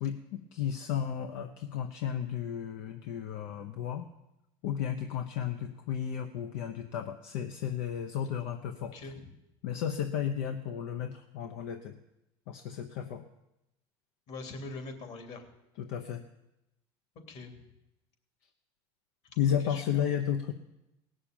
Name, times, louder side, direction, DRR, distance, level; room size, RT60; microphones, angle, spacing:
voice 1, 0.0-4.1 4.6-8.9 9.6-11.9 12.5-13.2 15.8-16.3 19.4-20.5, left 9 dB, 80° left, 5 dB, 1.0 m, -33 dB
voice 2, 8.9-9.3 14.3-15.5 17.3-17.5 19.4-20.0, left 3 dB, 60° left, 6 dB, 2.9 m, -43 dB
17.5 x 6.7 x 9.0 m, 0.91 s
supercardioid pair, 115°, 13 cm